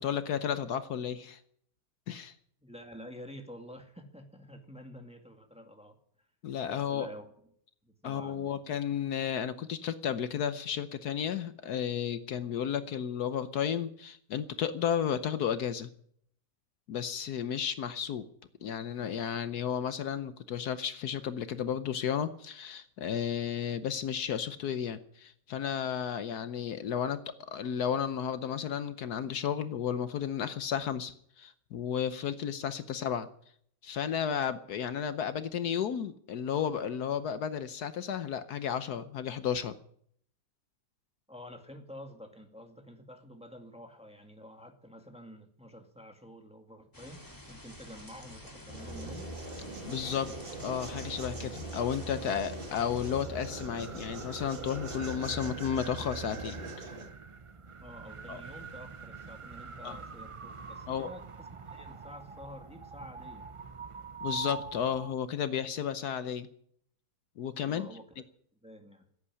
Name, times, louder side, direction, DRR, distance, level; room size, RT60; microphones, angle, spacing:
voice 1, 0.0-1.4 2.1-2.3 6.4-7.1 8.0-15.9 16.9-18.3 18.6-33.3 33.8-39.7 49.9-50.3 50.6-56.9 58.3-58.4 59.8-60.0 60.9-61.1 64.2-66.5 67.4-67.9, left 8 dB, 70° left, 12 dB, 1.3 m, -33 dB
voice 2, 2.6-6.0 6.7-7.3 7.8-8.6 41.3-47.2 47.5-49.3 57.8-63.5 67.6-68.2 68.5-69.0, equal, 5° right, 4 dB, 2.0 m, -49 dB
sound 1, 46.9-53.2, left 1 dB, 10° left, 2.2 m, -49 dB
sound 2, 48.7-57.1, right 2 dB, 35° right, 1.8 m, -41 dB
sound 3, 53.0-65.1, right 5 dB, 55° right, 0.3 m, -45 dB
16.0 x 8.4 x 9.8 m, 0.65 s
omnidirectional pair, 1.8 m